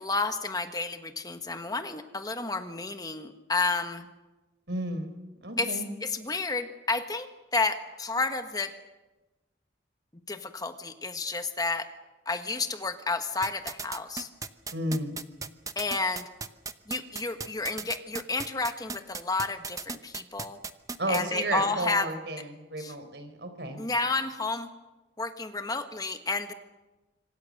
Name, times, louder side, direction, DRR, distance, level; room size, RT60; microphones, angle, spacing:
voice 1, 0.0-4.1 5.6-8.7 10.3-11.9 12.3-14.3 15.7-16.3 16.9-20.6 21.1-22.1 22.8-22.9 23.8-24.7 25.2-26.5, left 3 dB, 20° left, 8 dB, 1.3 m, -31 dB
voice 2, 4.7-5.1 5.4-5.9 14.7-15.2 21.0-23.8, right 1 dB, 75° right, 8 dB, 4.2 m, -32 dB
sound 1, 13.4-21.2, right 4 dB, 20° right, 0.9 m, -36 dB
26.5 x 25.0 x 6.5 m, 1.1 s
head